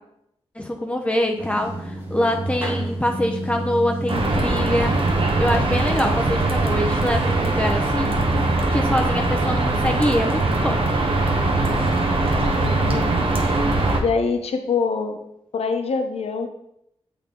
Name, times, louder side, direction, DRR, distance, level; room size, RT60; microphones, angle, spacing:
voice 1, 0.6-5.0 5.3-8.2 8.7-10.8, left 1 dB, 10° left, 2 dB, 0.6 m, -24 dB
sound 1, 1.4-7.9, right 1 dB, 20° right, 1.1 m, -30 dB
sound 2, 4.1-14.0, right 2 dB, 60° right, 0.9 m, -21 dB
voice 2, 12.6-13.1 14.0-15.2 15.5-16.5, left 5 dB, 75° left, 5 dB, 0.7 m, -24 dB
7.7 x 3.4 x 3.7 m, 0.79 s
wide cardioid pair, 100°, 10 cm